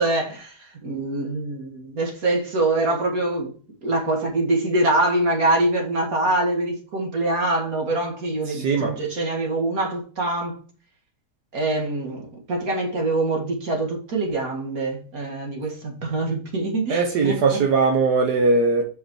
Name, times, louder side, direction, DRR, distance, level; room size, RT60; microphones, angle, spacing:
voice 1, 0.0-3.5 3.8-10.6 11.5-17.6, right 2 dB, 65° right, 2.5 m, -24 dB
voice 2, 8.5-8.9 16.9-18.8, right 4 dB, 90° right, 1.6 m, -20 dB
6.0 x 5.1 x 4.8 m
omnidirectional pair, 1.7 m